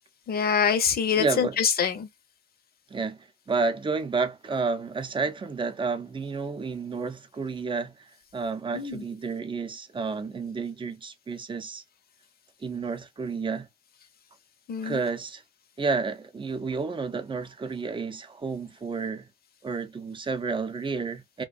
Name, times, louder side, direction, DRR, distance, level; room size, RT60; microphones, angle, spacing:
voice 1, 0.3-2.1 8.7-9.0 14.7-15.0, left 7 dB, 50° left, 0.8 m, -25 dB
voice 2, 1.2-1.6 2.9-11.8 12.6-13.7 14.8-15.4 15.8-19.3 19.6-21.4, right 4 dB, 25° right, 0.6 m, -31 dB
2.4 x 2.2 x 2.4 m
cardioid pair, 90°, 20 cm